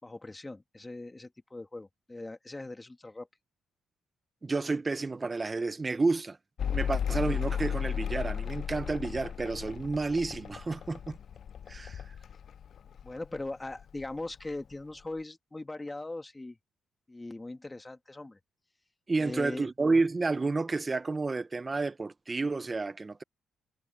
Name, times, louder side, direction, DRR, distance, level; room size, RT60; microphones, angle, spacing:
voice 1, 0.0-3.3 13.0-16.6 17.1-18.4 19.2-19.7, left 2 dB, 15° left, 2.4 m, -40 dB
voice 2, 4.4-6.4 6.7-11.2 11.7-12.0 19.1-23.2, right 3 dB, 25° right, 1.4 m, -30 dB
Mechanical fan, 6.6-13.5 13.7-14.5, left 8 dB, 55° left, 0.5 m, -35 dB
cardioid pair, 90°, 0 cm